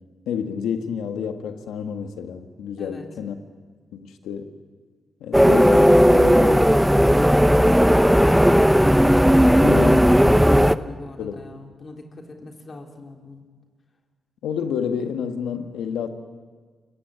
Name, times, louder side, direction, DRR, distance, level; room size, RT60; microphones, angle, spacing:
voice 1, 0.3-3.4 3.9-4.5 5.2-6.9 9.6-10.7 11.2-11.3 14.4-16.1, left 7 dB, 90° left, 7 dB, 1.6 m, -29 dB
sound 1, 5.3-10.8, equal, ahead, 0.8 m, -15 dB
voice 2, 10.3-13.4, left 2 dB, 50° left, 2 dB, 3.6 m, -41 dB
28.0 x 16.0 x 8.9 m, 1.5 s
supercardioid pair, 50°, 0 cm